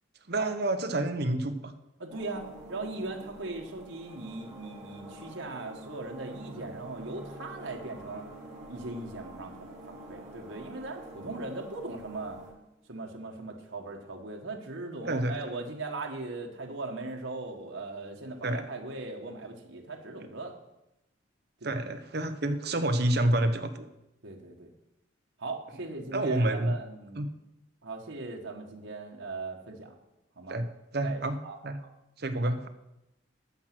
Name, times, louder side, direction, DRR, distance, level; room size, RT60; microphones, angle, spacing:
voice 1, 0.3-1.7 15.1-15.4 18.4-18.7 20.2-20.3 21.6-23.9 26.1-26.7 27.2-27.3 30.5-30.7 30.9-31.4 31.6-31.8 32.2-32.7, right 1 dB, 55° right, 8 dB, 0.9 m, -28 dB
voice 2, 2.0-8.3 8.7-12.4 12.9-20.6 21.6-21.8 24.2-24.7 25.4-27.2 27.8-29.9 30.4-30.6 31.0-31.9 32.4-32.5, right 3 dB, 85° right, 1 dB, 1.4 m, -39 dB
sound 1, 2.1-12.5, right 1 dB, 40° right, 5.4 m, -47 dB
14.0 x 6.2 x 6.0 m, 0.90 s
head